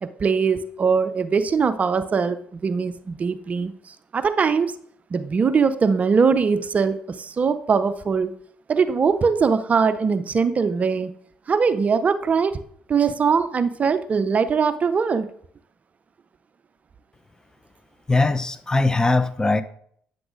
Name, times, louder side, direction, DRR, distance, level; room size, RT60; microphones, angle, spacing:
voice 1, 0.0-4.7 5.1-8.3 8.7-11.1 11.5-12.6 12.9-15.3, right 5 dB, 40° right, 12 dB, 0.5 m, -21 dB
voice 2, 18.1-19.6, left 3 dB, 20° left, 12 dB, 0.5 m, -20 dB
8.8 x 7.7 x 2.5 m, 0.64 s
hypercardioid pair, 55°, 4 cm